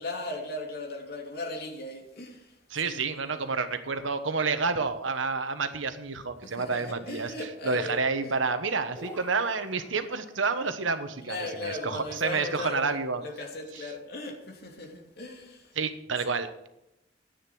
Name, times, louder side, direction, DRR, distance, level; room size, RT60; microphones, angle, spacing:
voice 1, 0.0-3.3 6.4-8.3 11.2-15.8, left 2 dB, 55° left, 2.8 m, -38 dB
voice 2, 2.7-7.3 7.6-13.2 15.7-16.7, right 4 dB, 85° right, 1.2 m, -29 dB
sound 1, 9.0-10.5, equal, 10° left, 4.5 m, -46 dB
10.5 x 9.6 x 6.2 m
head